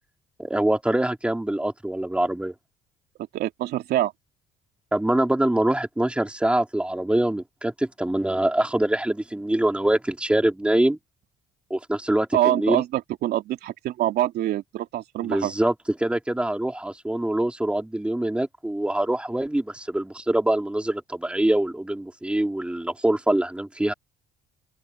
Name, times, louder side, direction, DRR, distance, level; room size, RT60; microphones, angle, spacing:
voice 1, 0.4-2.5 4.9-11.0 11.7-12.8 15.2-15.7 16.0-23.9, right 1 dB, 5° right, 4.2 m, -24 dB
voice 2, 3.3-4.1 12.3-15.5, right 13 dB, 75° right, 3.0 m, -25 dB
open air
cardioid pair, 110°, 17 cm